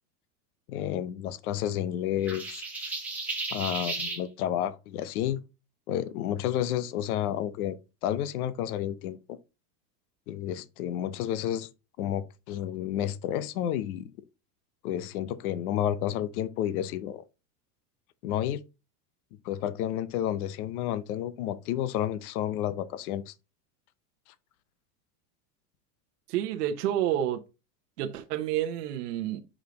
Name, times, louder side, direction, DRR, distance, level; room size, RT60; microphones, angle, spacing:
voice 1, 0.7-2.6 3.5-5.4 5.9-7.8 8.0-9.4 10.3-11.7 12.0-14.1 14.8-17.2 18.2-18.6 19.4-23.3, left 11 dB, 65° left, 0.7 m, -31 dB
sound 1, 2.3-4.2, right 3 dB, 5° right, 1.2 m, -34 dB
voice 2, 26.3-27.4 28.0-29.4, right 11 dB, 75° right, 0.9 m, -29 dB
5.4 x 5.0 x 3.8 m
supercardioid pair, 180°, 47 cm